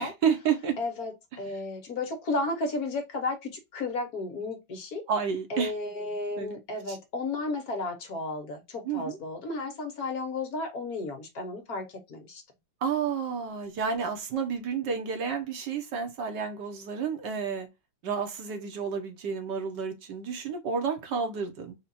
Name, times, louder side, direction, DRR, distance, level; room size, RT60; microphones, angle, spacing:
voice 1, 0.0-0.8 5.1-5.7 6.4-6.6 6.9-7.0 8.8-9.2 12.8-17.7 18.0-21.8, right 6 dB, 70° right, 1.6 m, -30 dB
voice 2, 0.8-5.0 5.5-12.4, left 2 dB, 60° left, 1.4 m, -33 dB
4.4 x 2.4 x 4.0 m
omnidirectional pair, 2.0 m